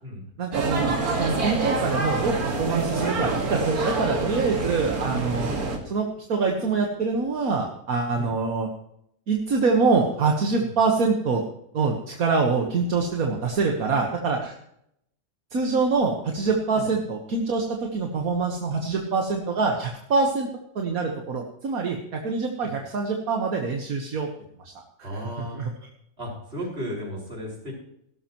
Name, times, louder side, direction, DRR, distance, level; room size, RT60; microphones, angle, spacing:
voice 1, 0.4-5.5 5.9-8.7 9.3-11.4 11.7-14.6 15.5-17.6 17.9-20.5 20.8-24.3 25.0-25.1 25.5-25.7, right 4 dB, 75° right, 1 dB, 1.8 m, -25 dB
sound 1, 0.5-5.8, right 3 dB, 90° right, 2.5 m, -26 dB
voice 2, 25.0-25.6 26.2-27.7, equal, 45° right, -2 dB, 5.9 m, -35 dB
17.5 x 12.5 x 3.1 m, 0.73 s
omnidirectional pair, 1.5 m